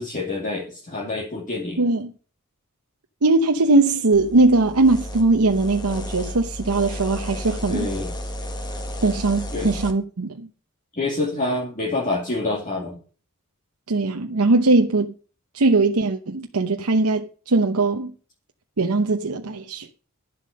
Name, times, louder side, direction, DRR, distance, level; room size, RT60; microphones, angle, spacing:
voice 1, 0.0-1.8 7.7-8.1 9.5-9.7 11.0-13.0, left 2 dB, 35° left, 2.5 m, -27 dB
voice 2, 1.8-2.1 3.2-7.9 9.0-10.5 13.9-15.1 15.5-18.1 18.8-19.9, right 3 dB, 80° right, 0.8 m, -20 dB
sound 1, 4.1-9.9, left 1 dB, 20° left, 1.5 m, -33 dB
11.0 x 7.7 x 6.5 m
head